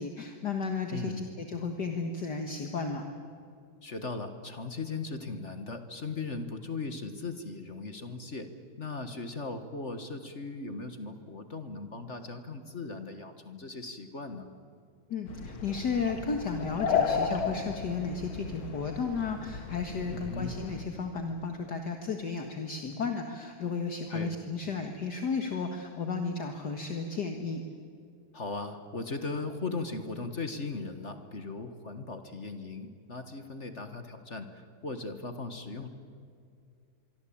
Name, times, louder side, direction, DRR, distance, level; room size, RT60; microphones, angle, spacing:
voice 1, 0.0-3.0 15.1-27.6, left 4 dB, 50° left, 4 dB, 2.2 m, -33 dB
voice 2, 0.9-1.4 3.8-8.5 8.8-14.5 20.1-20.6 24.1-24.4 28.3-35.9, left 3 dB, 35° left, 8 dB, 1.7 m, -38 dB
sound 1, 15.3-20.8, left 6 dB, 75° left, 2.7 m, -34 dB
26.0 x 24.0 x 8.7 m, 2.3 s
omnidirectional pair, 2.3 m